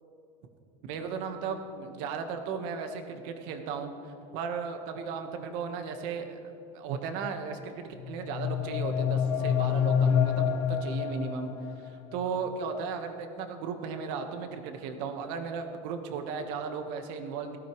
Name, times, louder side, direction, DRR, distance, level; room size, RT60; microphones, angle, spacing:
voice 1, 0.8-6.4 6.7-11.5 11.8-17.6, right 5 dB, 70° right, 6 dB, 1.4 m, -36 dB
sound 1, 8.0-11.9, left 8 dB, 65° left, 0.9 m, -27 dB
18.0 x 13.0 x 3.2 m, 2.6 s
cardioid pair, 150°, 19 cm